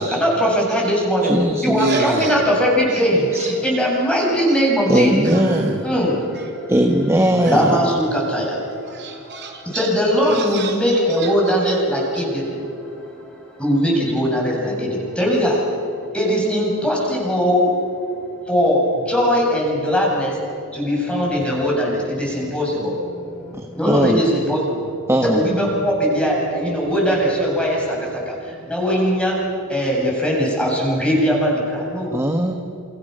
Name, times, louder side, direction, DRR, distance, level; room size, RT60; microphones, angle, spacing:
voice 1, 0.1-1.3 1.6-3.2 3.6-5.1 5.8-6.1 7.4-8.5 9.7-12.4 13.6-14.9 15.2-15.5 16.1-17.7 18.5-18.8 19.1-20.3 20.8-22.9 23.8-24.6 25.2-27.8 28.7-29.3 29.7-31.6 31.9-32.1, equal, 5° left, -3 dB, 7.7 m, -19 dB
voice 2, 1.2-2.3 3.2-3.5 4.9-5.8 6.7-7.8 23.5-24.2 25.1-25.4 32.1-32.5, right 1 dB, 10° right, 4 dB, 1.4 m, -19 dB
voice 3, 1.7-2.4 2.9-3.0 3.3-3.5 4.5-4.6 5.2-5.9 6.3-6.5 7.2-7.7 8.7-12.3, right 3 dB, 50° right, 2 dB, 4.0 m, -29 dB
29.0 x 28.5 x 6.7 m, 2.6 s
head